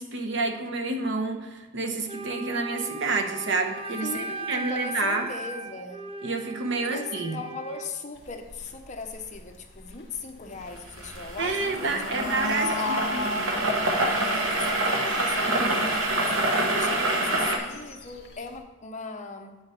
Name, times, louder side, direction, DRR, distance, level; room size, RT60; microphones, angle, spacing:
voice 1, 0.0-5.3 6.2-7.4 11.4-13.2 15.5-15.8, right 3 dB, 65° right, 4 dB, 1.0 m, -29 dB
Wind instrument woodwind instrument, 2.1-8.0, right 3 dB, 30° right, 0.5 m, -37 dB
voice 2, 4.0-6.1 6.8-13.1 14.1-16.3 16.7-19.6, left 4 dB, 35° left, 4 dB, 0.9 m, -38 dB
sound 1, 8.2-18.6, left 1 dB, 55° left, 1.6 m, -37 dB
sound 2, 10.8-17.6, right 1 dB, 85° right, 1.2 m, -26 dB
9.0 x 6.5 x 4.4 m, 1.2 s
head